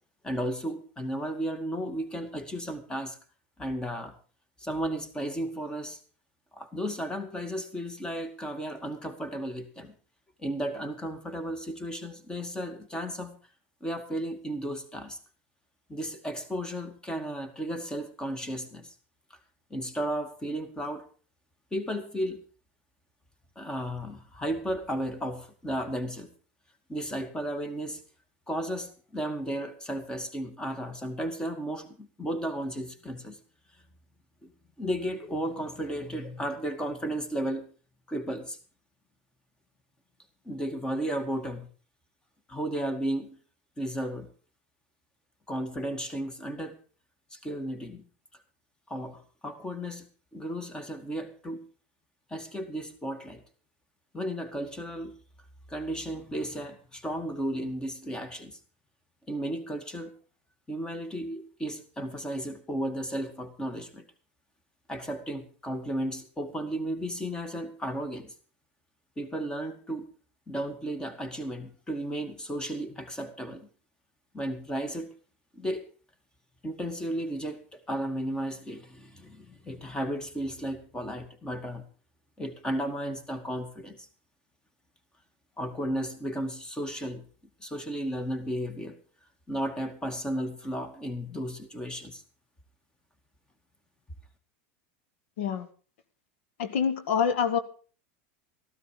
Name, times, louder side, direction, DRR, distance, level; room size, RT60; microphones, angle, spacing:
voice 1, 0.2-3.2 3.6-4.1 4.6-6.0 6.5-9.9 10.4-13.4 13.8-15.2 15.9-18.9 19.7-21.1 21.7-22.4 23.6-26.3 26.9-28.0 28.5-33.4 34.4-34.5 34.8-37.7 38.1-38.6 40.5-41.7 42.5-43.4 43.8-44.3 45.5-46.8 47.3-48.0 48.9-50.1 50.3-51.6 52.3-53.4 54.1-55.2 55.7-58.6 59.3-60.1 60.7-64.0 64.9-68.3 69.2-70.1 70.5-73.7 74.3-75.1 75.5-75.8 76.6-81.8 82.4-84.1 85.6-87.2 87.6-89.0 89.5-92.2, right 1 dB, 10° left, 9 dB, 2.2 m, -34 dB
voice 2, 96.6-97.6, left 7 dB, 75° left, 11 dB, 1.7 m, -26 dB
14.5 x 12.5 x 5.1 m, 0.38 s
supercardioid pair, 120°, 7 cm